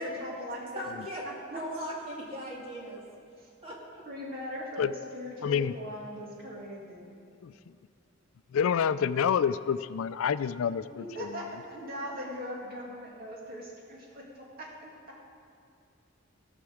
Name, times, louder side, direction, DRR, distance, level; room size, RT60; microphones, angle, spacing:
voice 1, 0.0-0.8 1.5-1.6 3.4-3.5 4.1-7.2 11.0-15.4, equal, 45° right, -3 dB, 2.2 m, -40 dB
voice 2, 0.7-3.0 3.6-4.0, equal, 25° right, -3 dB, 2.1 m, -38 dB
voice 3, 5.4-5.7 7.4-7.5 8.5-11.5, left 7 dB, 75° left, 14 dB, 0.3 m, -28 dB
17.0 x 5.9 x 6.4 m, 2.4 s
head